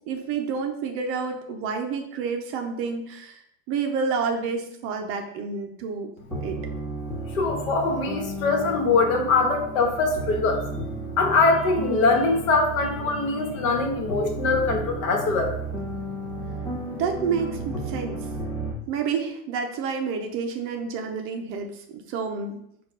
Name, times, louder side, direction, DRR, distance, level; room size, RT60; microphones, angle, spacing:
voice 1, 0.1-6.1 6.4-6.6 16.9-18.3 18.9-22.6, right 5 dB, 35° right, 4 dB, 0.4 m, -29 dB
sound 1, 6.3-18.7, right 2 dB, 5° left, 1.5 m, -33 dB
voice 2, 7.3-10.8 11.2-15.6, left 3 dB, 80° left, 4 dB, 1.1 m, -22 dB
4.4 x 2.3 x 4.7 m, 0.73 s
supercardioid pair, 145°, 41 cm